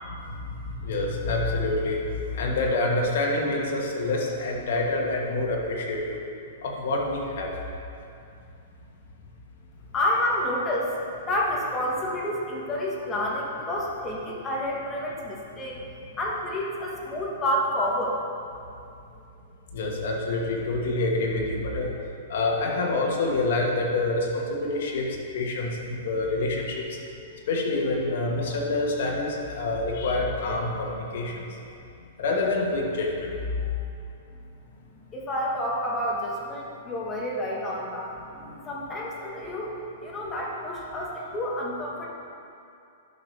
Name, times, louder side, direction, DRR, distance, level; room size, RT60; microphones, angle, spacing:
voice 1, 0.6-2.0 2.3-6.2 6.6-7.5 19.7-21.9 22.3-27.0 27.3-31.5 32.2-33.7 38.4-38.7, left 2 dB, 65° left, -1 dB, 1.6 m, -27 dB
voice 2, 9.9-11.0 11.2-15.8 16.1-18.2 35.1-38.2 38.7-39.7 40.0-42.1, left 1 dB, 15° left, -4 dB, 1.3 m, -29 dB
11.5 x 6.7 x 3.4 m, 2.6 s
hypercardioid pair, 160°, 0 cm